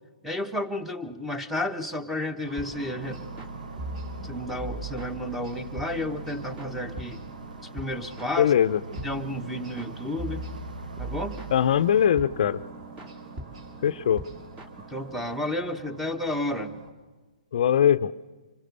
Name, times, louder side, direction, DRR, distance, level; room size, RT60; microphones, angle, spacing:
voice 1, 0.2-3.2 4.2-7.2 7.7-8.5 9.0-10.4 11.0-11.4 14.9-16.7, left 1 dB, ahead, 10 dB, 1.3 m, -31 dB
sound 1, 2.4-16.9, right 2 dB, 55° right, 4.5 m, -47 dB
sound 2, 2.6-15.4, right 2 dB, 25° right, 2.7 m, -41 dB
Boat Water vehicle, 3.0-12.1, right 2 dB, 90° right, 0.9 m, -42 dB
voice 2, 8.4-8.8 11.5-12.6 13.8-14.2 17.5-18.1, left 9 dB, 55° left, 12 dB, 0.7 m, -21 dB
26.0 x 21.0 x 6.9 m, 1.3 s
hypercardioid pair, 135°, 4 cm